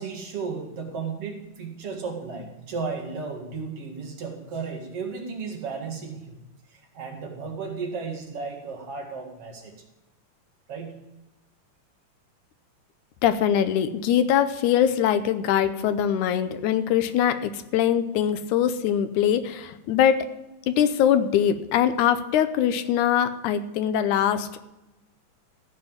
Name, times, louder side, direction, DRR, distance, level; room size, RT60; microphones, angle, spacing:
voice 1, 0.0-6.4 6.7-9.7 10.7-11.1, right 5 dB, 55° right, 2 dB, 2.5 m, -34 dB
voice 2, 13.2-20.3 20.7-24.6, left 9 dB, 85° left, 11 dB, 2.2 m, -22 dB
15.0 x 5.3 x 8.8 m, 0.98 s
omnidirectional pair, 3.4 m